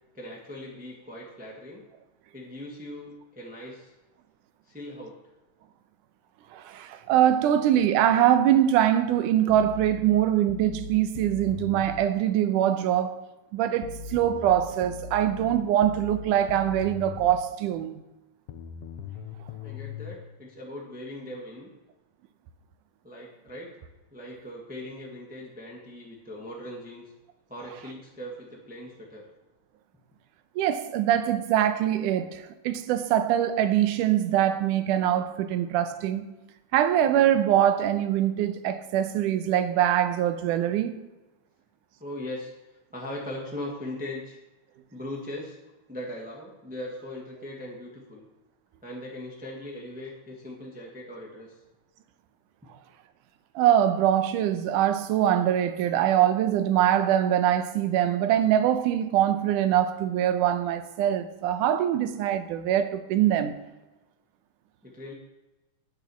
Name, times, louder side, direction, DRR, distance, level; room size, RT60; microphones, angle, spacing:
voice 1, 0.1-1.8 2.3-3.9 4.6-5.2 19.6-21.7 23.0-23.8 24.1-27.1 27.5-29.3 42.0-42.5 42.9-44.4 44.9-45.6 45.9-48.3 48.8-51.6 64.8-65.1, left 1 dB, 5° right, 0.7 m, -39 dB
voice 2, 6.5-13.2 13.5-17.9 30.6-36.3 36.7-41.0 53.6-63.6, right 11 dB, 90° right, 2.3 m, -23 dB
sound 1, 9.5-12.1 13.8-17.4 18.5-20.1, left 5 dB, 80° left, 1.3 m, -39 dB
9.2 x 7.3 x 7.0 m
omnidirectional pair, 3.6 m